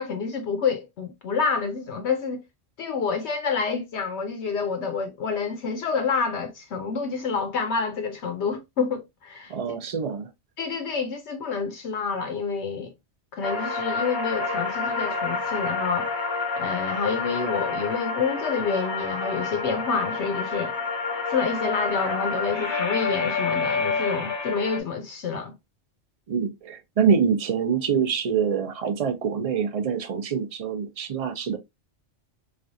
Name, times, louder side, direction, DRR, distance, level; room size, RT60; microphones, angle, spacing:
voice 1, 0.0-2.4 2.8-9.5 10.6-12.9 13.3-16.1 16.6-20.7 21.3-25.5, left 5 dB, 70° left, 0.8 m, -28 dB
voice 2, 9.5-10.3 26.3-31.6, right 6 dB, 50° right, 0.4 m, -25 dB
sound 1, 13.4-24.8, left 4 dB, 30° left, 0.6 m, -28 dB
3.2 x 2.3 x 2.6 m
omnidirectional pair, 1.2 m